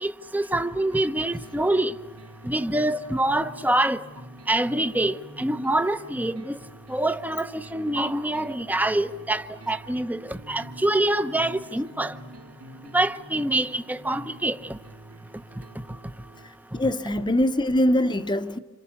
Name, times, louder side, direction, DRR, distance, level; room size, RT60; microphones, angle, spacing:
voice 1, 0.0-1.9 2.4-4.0 4.5-6.5 6.9-12.1 12.9-14.6, right 1 dB, 5° right, 0.8 m, -25 dB
sound 1, 0.8-16.7, right 1 dB, 75° right, 3.3 m, -46 dB
voice 2, 16.7-18.6, left 1 dB, 20° left, 0.9 m, -23 dB
28.0 x 27.5 x 7.1 m
head